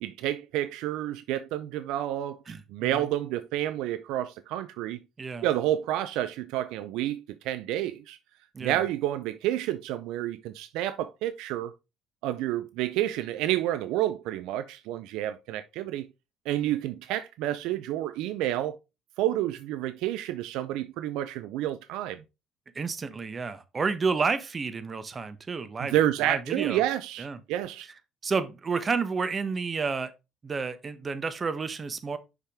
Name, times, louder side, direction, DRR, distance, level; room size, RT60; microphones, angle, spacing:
voice 1, 0.0-2.4 2.7-5.0 5.4-8.2 8.6-11.7 12.2-16.1 16.5-18.8 19.2-22.2 25.8-27.9, right 13 dB, 75° right, 0.4 m, -29 dB
voice 2, 2.5-3.1 5.2-5.5 8.5-8.8 22.7-25.9 26.2-26.8 27.2-27.4 28.2-30.1 30.4-32.2, right 5 dB, 35° right, 1.0 m, -30 dB
5.9 x 5.7 x 3.4 m
supercardioid pair, 70°, 0 cm